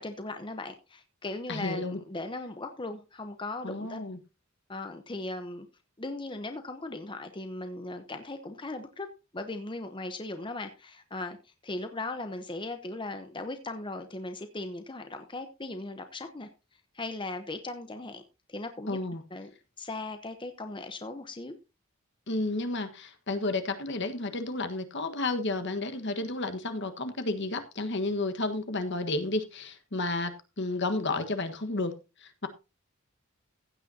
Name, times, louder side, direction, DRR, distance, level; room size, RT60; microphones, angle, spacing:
voice 1, 0.0-4.0 4.7-5.7 6.0-9.1 9.3-16.5 16.9-18.2 18.5-19.0 19.3-19.5 19.8-21.6, left 2 dB, 25° left, 0.9 m, -38 dB
voice 2, 1.5-2.0 3.6-4.2 18.9-19.2 22.3-32.5, left 2 dB, 55° left, 1.5 m, -32 dB
15.5 x 9.0 x 2.8 m
head